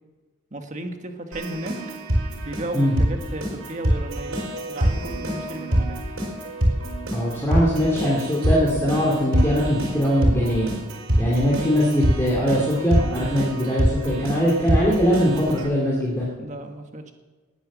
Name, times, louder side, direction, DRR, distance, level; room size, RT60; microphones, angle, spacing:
voice 1, 0.5-1.7 2.4-4.4 4.7-6.0 16.4-17.1, right 1 dB, 35° right, 5 dB, 1.6 m, -34 dB
Keyboard (musical), 1.3-15.6, right 1 dB, 75° right, 4.7 m, -25 dB
voice 2, 7.1-10.7 11.2-16.3, equal, 15° left, -5 dB, 2.7 m, -21 dB
19.5 x 9.3 x 7.4 m, 1.4 s
head